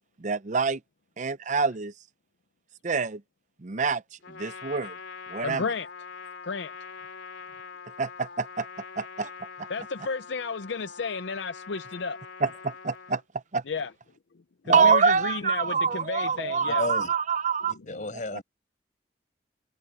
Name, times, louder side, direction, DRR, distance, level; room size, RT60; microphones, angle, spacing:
voice 1, 0.2-0.8 1.2-1.9 2.8-3.2 3.6-4.0 4.4-5.0 5.3-5.7 8.0-8.3 9.0-9.3 12.4-13.2 13.5-13.6 14.7-17.8 18.3-18.4, right 5 dB, 40° right, 0.6 m, -25 dB
Trumpet, 4.2-13.2, left 5 dB, 90° left, 2.9 m, -43 dB
voice 2, 5.4-5.9 6.4-6.7 9.7-12.2 13.7-13.9 14.8-16.9, left 4 dB, 75° left, 0.6 m, -32 dB
voice 3, 16.7-17.1 17.9-18.4, left 2 dB, 45° left, 5.3 m, -32 dB
head